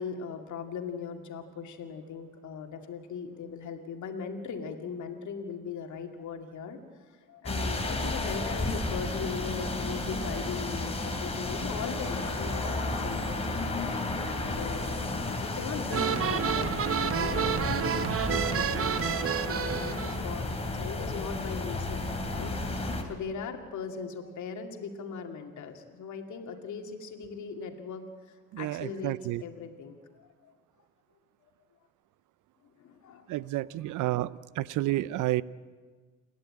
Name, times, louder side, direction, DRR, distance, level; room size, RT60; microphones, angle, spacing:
voice 1, 0.0-13.8 14.1-16.7 17.0-17.8 18.3-22.5 23.1-28.0 28.6-30.5 31.4-31.5 32.8-33.3, left 5 dB, 70° left, 4 dB, 2.4 m, -39 dB
sound 1, 7.5-23.0, left 2 dB, 20° left, 2.8 m, -32 dB
sound 2, 15.9-20.2, right 8 dB, 50° right, 0.9 m, -29 dB
voice 2, 28.5-29.4 33.3-35.4, right 16 dB, 85° right, 19 dB, 0.6 m, -30 dB
29.0 x 11.0 x 8.7 m, 1.4 s
cardioid pair, 90°, 30 cm